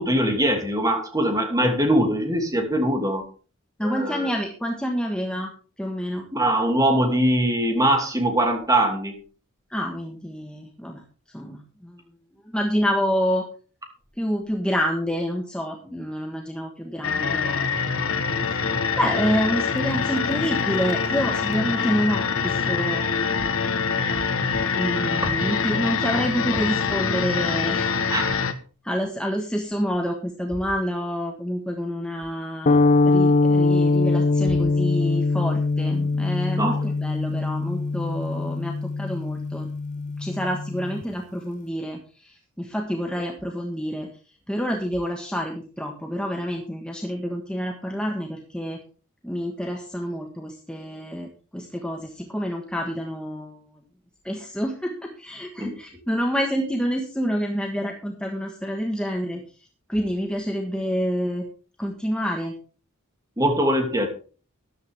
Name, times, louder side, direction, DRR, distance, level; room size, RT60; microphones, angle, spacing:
voice 1, 0.0-3.2 3.8-4.3 6.3-9.2 25.2-25.3 28.1-28.4 36.6-36.9 55.6-55.8 63.4-64.1, right 1 dB, 15° right, 3 dB, 2.8 m, -22 dB
voice 2, 3.8-5.5 5.8-6.3 9.7-11.0 11.3-12.0 12.5-13.4 14.2-17.6 17.9-18.0 18.5-18.6 19.0-23.2 24.8-27.9 28.8-32.8 33.0-39.7 40.2-42.0 42.2-44.1 44.5-48.8 49.2-53.6 54.2-54.9 55.2-59.4 59.9-61.4 61.8-62.5, equal, 5° left, 1 dB, 1.5 m, -28 dB
sound 1, 17.0-28.5, left 5 dB, 65° left, 1.3 m, -25 dB
sound 2, 32.7-41.0, left 3 dB, 35° left, 0.5 m, -22 dB
13.5 x 11.5 x 3.6 m, 0.38 s
head